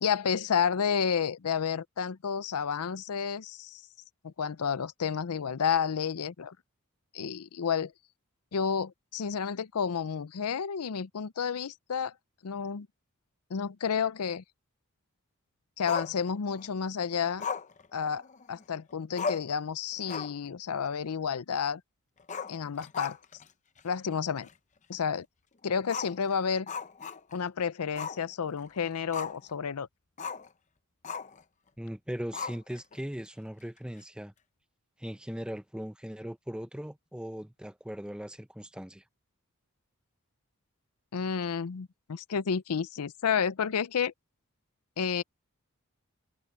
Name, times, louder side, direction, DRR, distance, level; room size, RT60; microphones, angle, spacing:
voice 1, 0.0-3.8 4.2-6.6 7.1-7.9 8.5-12.1 12.4-12.9 13.5-14.4 15.8-17.5 17.9-21.8 22.5-23.2 23.8-24.5 24.9-25.3 25.6-26.7 27.3-29.9 41.1-44.1 45.0-45.2, left 6 dB, 90° left, 0.6 m, -31 dB
Growling, 15.9-16.7 17.4-18.6 18.9-19.0 19.2-19.6 20.0-20.5 20.8-20.9 22.2-23.4 23.8-23.9 24.4-24.5 25.8-27.5 27.9-28.2 28.6-29.5 30.2-30.5 31.0-31.4 32.3-32.9, left 5 dB, 35° left, 0.7 m, -37 dB
voice 2, 31.8-34.3 35.0-39.0, equal, 5° right, 0.6 m, -39 dB
head